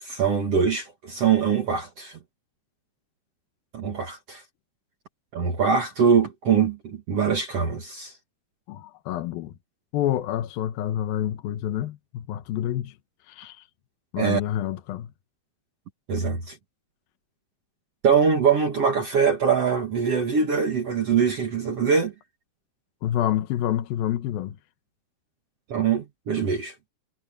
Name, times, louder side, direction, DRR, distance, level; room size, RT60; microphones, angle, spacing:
voice 1, 0.0-2.2 3.7-4.4 5.3-8.1 14.2-14.4 16.1-16.6 18.0-22.1 25.7-26.7, right 6 dB, 55° right, 1.8 m, -23 dB
voice 2, 8.7-9.5 9.9-13.0 13.3-13.7 14.1-15.1 23.0-24.6, left 12 dB, 70° left, 2.5 m, -28 dB
omnidirectional pair, 5.0 m